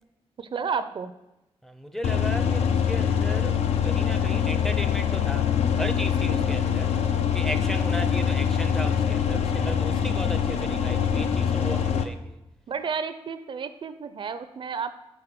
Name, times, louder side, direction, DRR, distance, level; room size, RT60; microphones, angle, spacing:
voice 1, 0.4-1.1 12.7-15.0, right 6 dB, 55° right, 0.4 m, -31 dB
voice 2, 1.6-7.0 7.3-12.4, right 1 dB, 5° left, 0.4 m, -36 dB
sound 1, 2.0-12.0, left 8 dB, 85° left, 0.5 m, -24 dB
6.0 x 4.2 x 5.0 m
cardioid pair, 90°, 10 cm